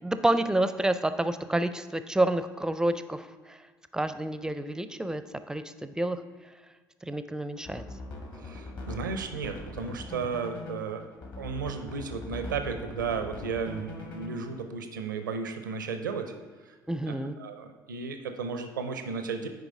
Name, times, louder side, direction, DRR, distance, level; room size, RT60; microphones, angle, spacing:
voice 1, 0.0-3.6 3.9-6.2 7.0-7.8 16.9-17.4, right 1 dB, 5° right, 11 dB, 0.5 m, -29 dB
sound 1, 7.5-14.6, left 2 dB, 45° left, 1.5 m, -41 dB
voice 2, 8.4-11.0 11.4-16.3 16.6-16.8 17.1-19.5, right 5 dB, 80° right, 7 dB, 0.5 m, -34 dB
9.2 x 4.9 x 3.7 m, 1.5 s
figure-of-eight pair, 55°, 10 cm